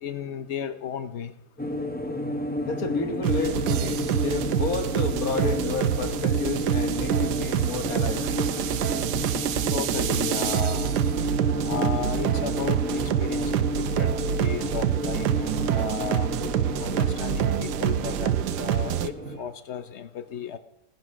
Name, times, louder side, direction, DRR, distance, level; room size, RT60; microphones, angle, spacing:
voice 1, 0.0-1.3 9.7-11.0 11.6-16.3 16.8-18.3 18.6-20.6, left 8 dB, 80° left, 12 dB, 0.6 m, -34 dB
sound 1, 1.6-19.4, left 1 dB, 10° left, 0.4 m, -31 dB
voice 2, 2.6-8.3, left 4 dB, 50° left, 7 dB, 1.5 m, -31 dB
sound 2, 2.8-19.5, right 6 dB, 45° right, 1.3 m, -47 dB
sound 3, 3.2-19.1, right 11 dB, 70° right, 1.1 m, -26 dB
17.5 x 10.5 x 6.3 m, 0.84 s
omnidirectional pair, 2.1 m